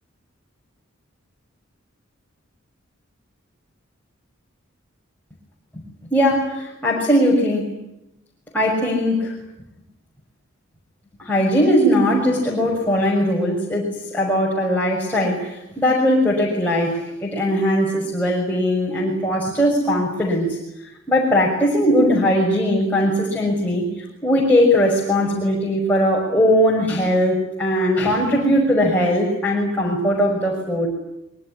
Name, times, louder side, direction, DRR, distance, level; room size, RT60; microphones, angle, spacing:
voice 1, 6.1-7.7 8.5-9.4 11.2-20.6 21.1-23.9 24.2-30.9, equal, 10° left, -3 dB, 6.3 m, -19 dB
25.0 x 23.0 x 10.0 m, 0.86 s
head